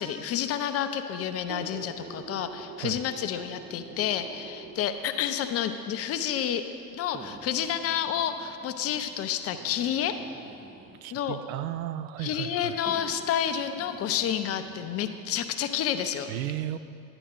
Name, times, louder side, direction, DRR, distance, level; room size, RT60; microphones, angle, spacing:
voice 1, 0.0-6.6 6.9-10.2 11.1-11.4 12.2-16.3, left 9 dB, 30° left, 9 dB, 0.5 m, -29 dB
sound 1, 1.4-5.1 6.0-6.1 7.1-11.1 12.1-12.2 12.8-15.5 15.9-16.0, right 4 dB, 20° right, 0.6 m, -46 dB
voice 2, 11.0-12.7 16.3-16.8, right 12 dB, 60° right, 12 dB, 0.5 m, -34 dB
10.5 x 9.9 x 3.8 m, 2.5 s
figure-of-eight pair, 65°, 49 cm